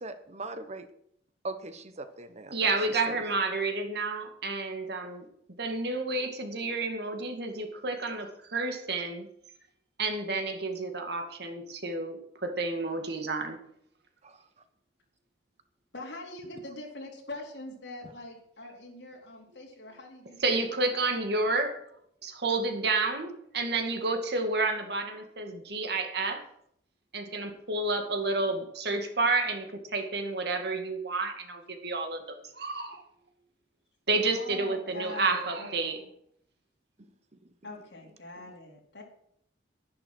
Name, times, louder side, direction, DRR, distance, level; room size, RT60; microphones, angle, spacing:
voice 1, 0.0-0.9 1.4-2.5 3.1-3.2, right 2 dB, 40° right, 10 dB, 1.1 m, -39 dB
voice 2, 2.5-5.3 5.6-9.3 10.0-13.6 20.4-21.8 22.2-26.4 27.1-33.0 34.1-36.0, right 3 dB, 65° right, 5 dB, 2.2 m, -30 dB
voice 3, 15.9-20.7 34.2-35.7 37.6-39.0, left 2 dB, 70° left, -1 dB, 4.1 m, -43 dB
11.0 x 11.0 x 6.2 m, 0.70 s
head